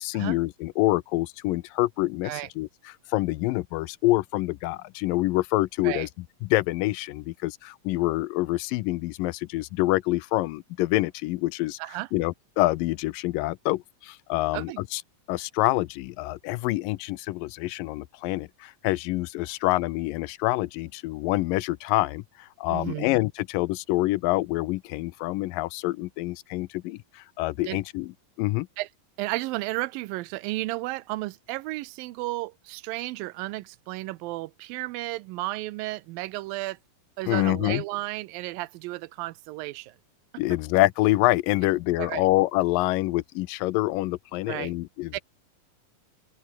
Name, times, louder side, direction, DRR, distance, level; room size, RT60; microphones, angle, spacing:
voice 1, 0.0-6.1 6.4-11.8 12.1-15.0 15.3-28.1 28.4-28.7 37.3-37.8 40.4-45.2, left 19 dB, 85° left, 2.3 m, -26 dB
voice 2, 22.7-23.1 27.7-27.8 28.8-28.9 29.2-36.8 37.2-40.0 42.0-42.2 44.5-44.7 45.1-45.2, right 19 dB, 85° right, 2.4 m, -33 dB
open air
omnidirectional pair, 4.0 m